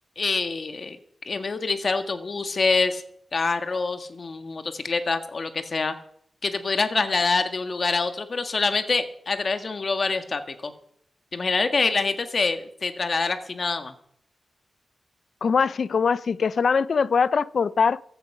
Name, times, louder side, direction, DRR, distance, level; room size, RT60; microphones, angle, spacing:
voice 1, 0.2-1.0 1.2-3.0 3.3-5.9 6.4-10.7 11.3-13.9, left 4 dB, 50° left, 1.7 m, -25 dB
voice 2, 15.4-18.0, left 5 dB, 65° left, 0.5 m, -22 dB
15.5 x 12.5 x 6.0 m
wide cardioid pair, 105°, 0 cm